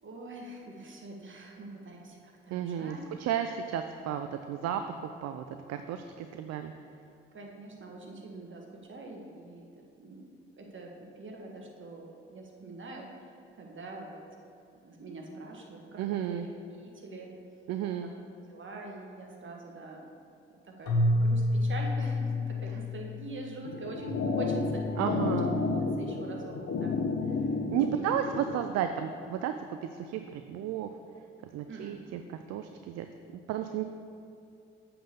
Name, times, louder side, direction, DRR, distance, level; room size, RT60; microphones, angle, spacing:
voice 1, 0.0-3.0 7.3-9.7 10.0-10.3 10.6-10.9 11.2-13.1 13.6-14.2 14.8-16.5 17.0-17.3 18.0-18.1 18.5-20.0 20.6-24.8 26.0-26.5 26.8-26.9 27.9-28.1 31.7-32.0, right 2 dB, 40° right, 0 dB, 1.6 m, -44 dB
voice 2, 2.5-6.7 16.0-16.5 17.7-18.1 25.0-25.6 27.7-30.9 31.5-33.1 33.3-33.8, right 9 dB, 60° right, 7 dB, 0.5 m, -33 dB
Keyboard (musical), 20.9-24.0, left 1 dB, 80° left, 1.1 m, -29 dB
sound 1, 23.7-28.6, left 3 dB, 50° left, 0.8 m, -31 dB
7.6 x 3.9 x 6.6 m, 2.6 s
hypercardioid pair, 40°, 29 cm